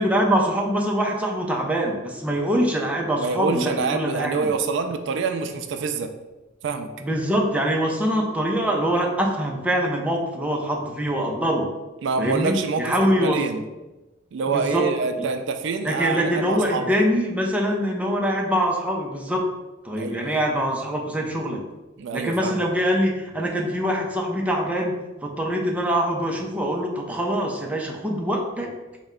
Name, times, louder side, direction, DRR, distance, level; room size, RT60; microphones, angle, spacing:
voice 1, 0.0-4.4 7.0-11.7 12.2-13.4 14.5-14.9 15.8-19.5 19.8-21.6 22.1-28.7, equal, 5° right, -1 dB, 0.5 m, -24 dB
voice 2, 3.2-6.1 6.6-6.9 12.0-13.6 14.3-17.0 20.0-20.4 22.0-22.6, right 4 dB, 65° right, 7 dB, 0.3 m, -26 dB
4.1 x 2.1 x 3.6 m, 1.1 s
head